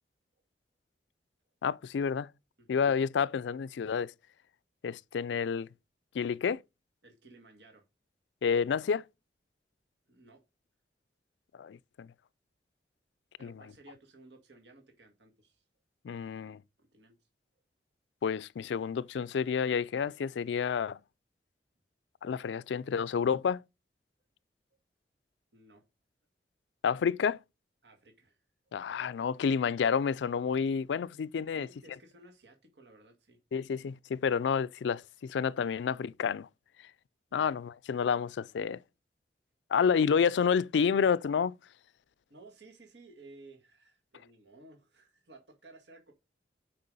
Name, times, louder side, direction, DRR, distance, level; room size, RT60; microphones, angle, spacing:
voice 1, 1.6-2.3 2.7-4.1 4.8-5.7 6.1-6.6 8.4-9.0 11.6-12.1 13.4-13.5 16.0-16.6 18.2-21.0 22.2-23.6 26.8-27.4 28.7-31.7 33.5-36.5 37.3-38.8 39.7-41.5, left 6 dB, 85° left, 0.4 m, -29 dB
voice 2, 7.0-7.8 10.1-10.4 13.4-15.6 16.8-17.3 25.5-25.8 27.8-28.4 28.6-28.8 31.5-33.4 37.3-37.4 39.7-39.8 42.3-46.1, right 2 dB, 80° right, 1.7 m, -56 dB
6.7 x 5.5 x 5.3 m
head